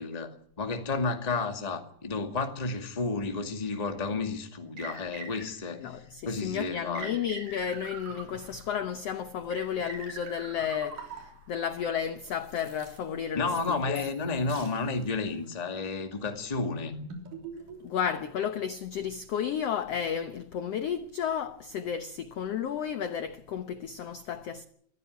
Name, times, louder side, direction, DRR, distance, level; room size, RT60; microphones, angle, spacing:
voice 1, 0.0-7.2 13.3-16.9, left 3 dB, 15° left, 1.6 m, -32 dB
sound 1, 3.7-3.8 4.8-5.8 7.0-8.7 9.5-11.5 12.2-13.0 13.6-14.2 14.5-14.8 15.3-15.5 16.1-18.1, right 3 dB, 70° right, 4.9 m, -43 dB
voice 2, 5.8-14.0 17.8-24.6, left 8 dB, 65° left, 1.6 m, -32 dB
24.0 x 15.0 x 9.3 m
omnidirectional pair, 3.9 m